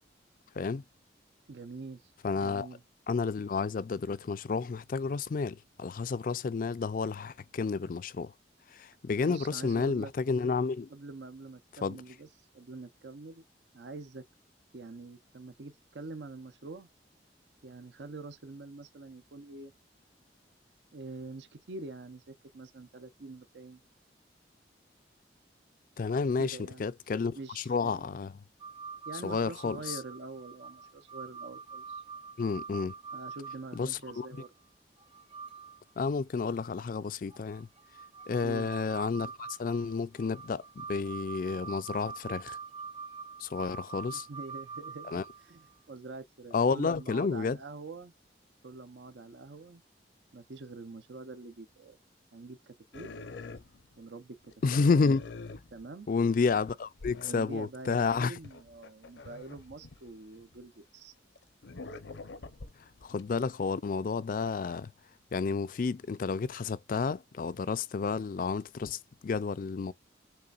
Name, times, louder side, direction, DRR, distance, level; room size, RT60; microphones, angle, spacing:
voice 1, 1.5-2.8 9.2-10.1 10.9-13.4 13.7-14.2 14.7-16.9 17.6-19.7 20.9-23.8 26.4-26.8 27.4-28.1 29.1-32.0 33.1-34.5 38.4-38.7 44.1-45.6 45.9-48.1 48.6-49.8 50.3-52.0 52.3-53.1 54.0-54.4 54.7-54.8 55.7-56.1 57.2-61.1, right 3 dB, 75° right, 0.7 m, -45 dB
voice 2, 2.2-2.7 3.1-8.3 8.7-10.9 11.8-12.0 26.0-28.3 29.2-30.0 32.4-32.9 33.7-34.3 36.0-37.7 38.3-42.6 43.4-44.3 45.1-45.2 46.5-47.6 54.6-55.2 56.1-58.4 63.0-64.9 65.3-69.9, left 4 dB, 50° left, 0.4 m, -31 dB
sound 1, 28.6-34.5 35.0-35.8 36.1-36.2 37.3-45.7 47.9-48.0, right 5 dB, 30° right, 0.8 m, -45 dB
sound 2, 52.9-54.1 54.5-56.2 56.5-56.6 57.0-57.3 57.9-60.7 61.4-63.3, left 3 dB, 80° left, 0.7 m, -45 dB
6.7 x 3.4 x 2.4 m
head